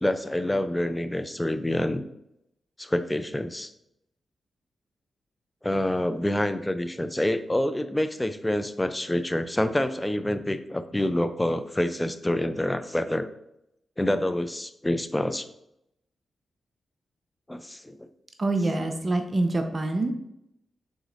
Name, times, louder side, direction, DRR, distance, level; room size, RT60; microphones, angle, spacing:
voice 1, 0.0-2.0 2.8-3.7 5.6-13.3 14.0-15.5 17.5-18.1, left 1 dB, 15° left, 10 dB, 0.4 m, -27 dB
voice 2, 18.4-20.1, right 2 dB, 40° right, 5 dB, 0.5 m, -25 dB
4.9 x 3.7 x 2.6 m, 0.80 s
supercardioid pair, 40°, 0 cm